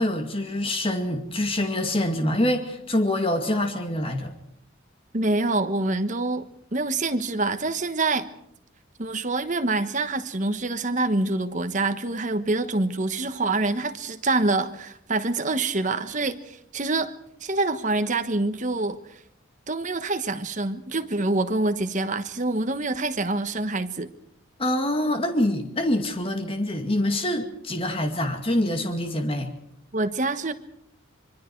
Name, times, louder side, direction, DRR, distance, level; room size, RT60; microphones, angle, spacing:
voice 1, 0.0-4.3 24.6-29.5, left 1 dB, 25° left, 2.2 m, -25 dB
voice 2, 5.1-6.4 6.7-8.3 9.0-17.1 17.4-19.2 19.7-24.1 29.9-30.5, right 2 dB, 35° right, 1.3 m, -26 dB
25.5 x 24.0 x 4.7 m
head